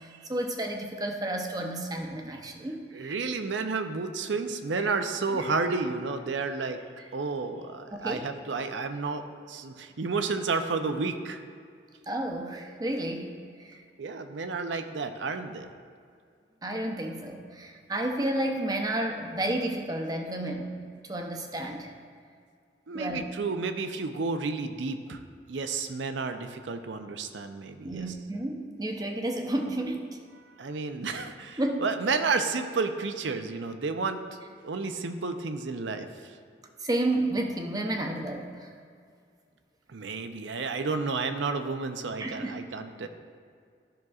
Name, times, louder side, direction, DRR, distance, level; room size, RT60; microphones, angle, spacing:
voice 1, 0.2-3.1 4.8-4.9 5.3-5.5 7.9-8.2 12.1-13.3 13.6-13.8 16.6-20.8 21.0-21.9 22.9-23.3 27.8-30.1 31.6-31.8 36.8-38.7 42.2-42.6, right 1 dB, 20° right, 3 dB, 0.6 m, -31 dB
voice 2, 2.9-6.8 7.1-11.4 14.0-15.7 22.9-25.2 25.5-28.1 30.4-34.2 34.6-36.4 39.9-43.1, right 4 dB, 80° right, 8 dB, 0.5 m, -31 dB
13.0 x 6.1 x 2.4 m, 2.2 s
head